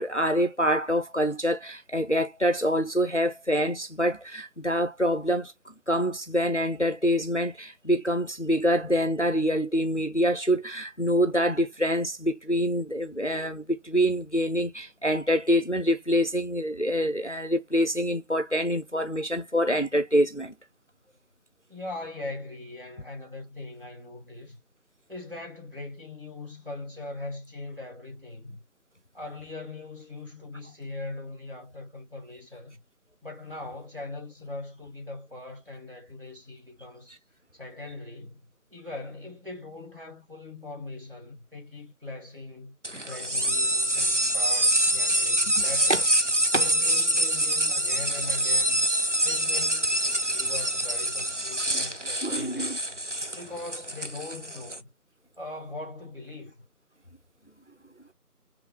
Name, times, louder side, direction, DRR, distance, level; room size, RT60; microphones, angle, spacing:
voice 1, 0.0-20.5 45.6-45.7 45.9-46.0 46.5-46.7 51.7-51.8 52.2-52.8, equal, 50° left, 0.6 m, -26 dB
voice 2, 21.7-24.6 25.1-28.6 29.1-32.8 33.2-37.2 37.5-38.4 38.7-42.7 43.1-46.1 46.6-48.9 49.2-52.8 53.3-54.9 55.4-56.5, left 2 dB, 35° right, 2.1 m, -40 dB
sound 1, 42.8-54.8, right 1 dB, 50° right, 0.7 m, -26 dB
5.1 x 3.2 x 2.2 m
figure-of-eight pair, 180°, 46 cm